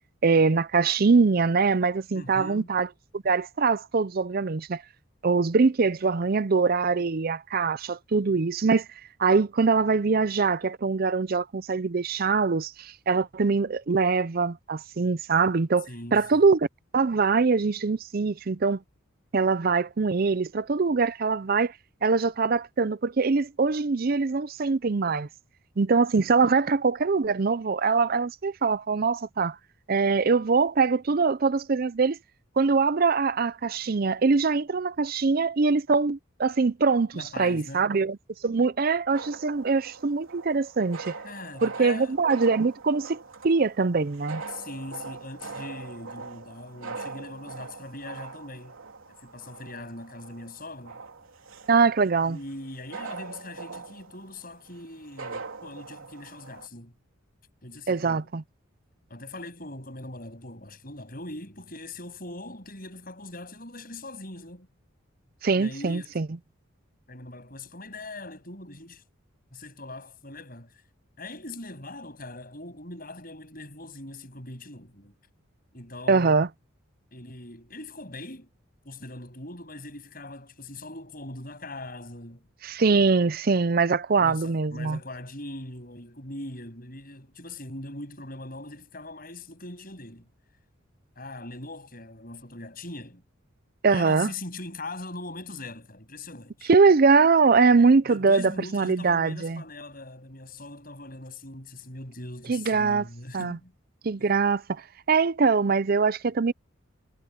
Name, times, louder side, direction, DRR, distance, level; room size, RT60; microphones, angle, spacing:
voice 1, 0.2-2.9 3.1-4.8 5.2-8.9 9.2-16.7 16.9-18.8 19.3-21.7 22.0-25.3 25.8-29.6 29.9-32.2 32.6-38.2 38.4-41.1 41.6-43.2 43.4-44.4 51.7-52.4 57.9-58.4 65.4-66.3 76.1-76.5 82.6-85.0 93.8-94.3 96.7-99.6 102.5-103.0 103.3-103.6 104.0-104.8 105.1-106.5, right 4 dB, 45° right, 0.5 m, -23 dB
voice 2, 2.1-2.7 15.9-16.4 37.1-37.9 41.2-42.2 44.5-48.8 49.1-51.0 52.2-56.9 57.6-58.3 59.1-64.7 65.5-66.2 67.1-69.0 69.5-70.8 71.2-75.1 75.7-76.4 77.1-78.5 78.8-82.5 84.2-90.3 91.2-93.2 93.9-96.7 98.0-103.7, left 2 dB, 45° left, 7.9 m, -41 dB
sound 1, 39.1-56.7, right 4 dB, 80° right, 3.3 m, -42 dB
head